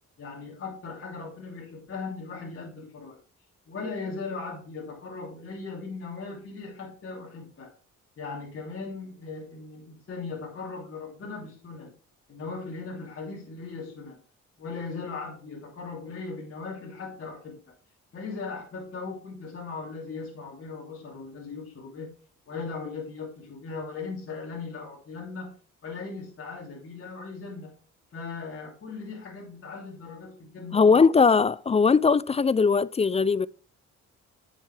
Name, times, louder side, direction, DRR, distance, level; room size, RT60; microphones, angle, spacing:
voice 1, 0.2-3.2 3.7-7.7 8.2-11.9 12.3-14.2 14.6-17.7 18.1-22.1 22.5-25.5 25.8-27.8 28.1-31.1, left 4 dB, 45° left, 3.0 m, -38 dB
voice 2, 30.7-33.5, left 5 dB, 20° left, 0.3 m, -20 dB
9.5 x 7.2 x 3.3 m
cardioid pair, 90°, 30 cm